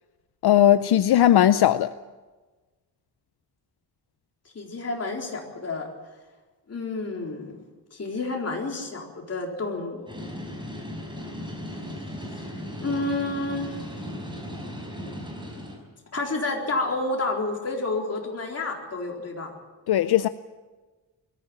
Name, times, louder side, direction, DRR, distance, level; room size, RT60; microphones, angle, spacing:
voice 1, 0.4-1.9 19.9-20.3, left 11 dB, 75° left, 0.6 m, -18 dB
voice 2, 4.5-5.9 6.7-7.5 7.9-10.1 12.3-12.4 12.8-13.8 16.1-19.5, left 2 dB, 40° left, 4.1 m, -30 dB
sound 1, 10.1-15.8, equal, 10° right, 5.5 m, -36 dB
22.0 x 14.5 x 8.8 m
wide cardioid pair, 150°, 40 cm